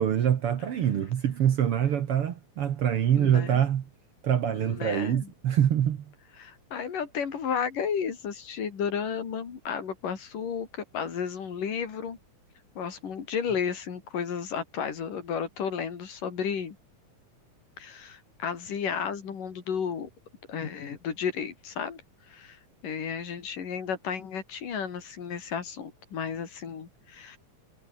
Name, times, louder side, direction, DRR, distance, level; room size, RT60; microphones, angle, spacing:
voice 1, 0.0-3.8 4.2-6.0, right 9 dB, 55° right, 1.8 m, -25 dB
voice 2, 3.1-3.6 4.5-5.3 6.4-12.2 12.8-16.8 17.8-20.1 20.5-22.0 22.3-27.4, left 7 dB, 80° left, 4.9 m, -33 dB
omnidirectional pair, 3.7 m